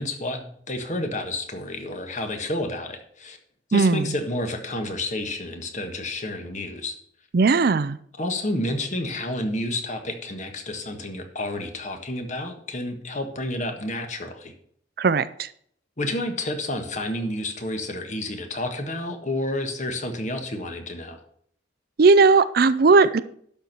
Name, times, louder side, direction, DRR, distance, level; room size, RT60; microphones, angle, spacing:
voice 1, 0.0-3.4 3.7-7.0 8.2-14.5 16.0-21.2, left 1 dB, 40° left, 6 dB, 1.5 m, -30 dB
voice 2, 3.7-4.1 7.3-8.0 15.0-15.5 22.0-23.2, right 4 dB, 55° right, 15 dB, 0.5 m, -17 dB
11.5 x 4.5 x 6.7 m, 0.63 s
head